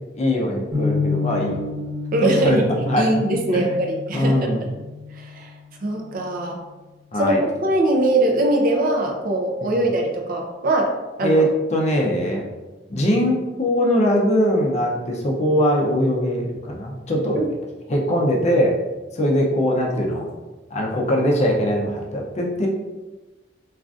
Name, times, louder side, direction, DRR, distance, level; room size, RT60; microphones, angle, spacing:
voice 1, 0.2-1.6 2.2-2.6 2.9-3.1 3.5-3.7 4.1-4.6 7.1-7.4 9.6-9.7 11.2-12.4 12.9-17.4 17.9-18.8 19.1-20.3 20.7-22.7, equal, 35° left, -1 dB, 0.5 m, -21 dB
sound 1, 0.7-6.8, left 4 dB, 85° right, 1.0 m, -30 dB
voice 2, 2.1-2.7 3.0-4.7 5.2-5.5 5.8-6.6 7.2-11.4 12.3-12.4 17.4-17.5, right 1 dB, 50° right, 1 dB, 0.5 m, -22 dB
3.6 x 2.4 x 2.4 m, 1.2 s
head